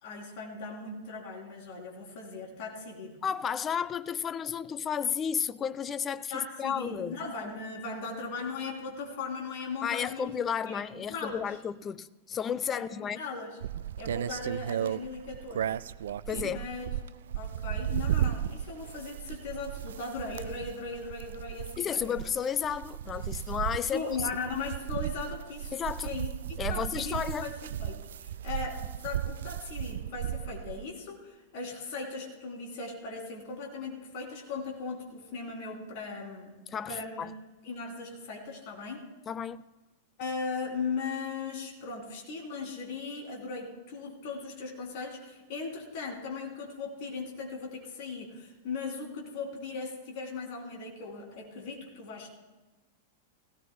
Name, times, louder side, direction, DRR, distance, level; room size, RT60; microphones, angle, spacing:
voice 1, 0.0-3.2 6.3-10.3 10.6-11.4 12.7-13.5 14.0-15.7 16.4-16.9 17.3-22.2 23.9-25.7 26.0-36.5 36.9-37.3 37.6-39.1 40.2-52.3, left 4 dB, 50° left, 3.3 m, -38 dB
voice 2, 3.2-7.2 9.8-13.2 16.3-16.7 21.8-24.2 25.7-26.2 26.6-27.5 36.7-37.3 39.3-39.6, left 8 dB, 25° left, 0.4 m, -32 dB
sound 1, 13.6-30.8, right 10 dB, 65° right, 0.3 m, -35 dB
17.5 x 17.0 x 2.3 m
figure-of-eight pair, 95°, 0 cm